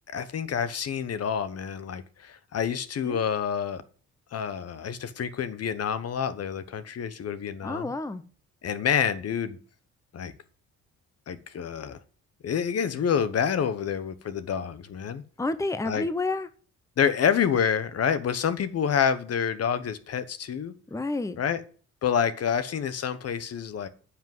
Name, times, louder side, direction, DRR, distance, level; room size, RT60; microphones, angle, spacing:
voice 1, 0.1-3.8 4.3-7.9 8.6-9.6 10.1-10.3 11.3-12.0 12.4-15.2 15.8-16.1 17.0-20.7 21.4-21.6 22.0-23.9, left 7 dB, 55° left, 1.1 m, -28 dB
voice 2, 7.6-8.2 15.4-16.5 20.9-21.4, left 2 dB, 10° left, 0.9 m, -29 dB
10.0 x 6.0 x 7.8 m
cardioid pair, 90°, 30 cm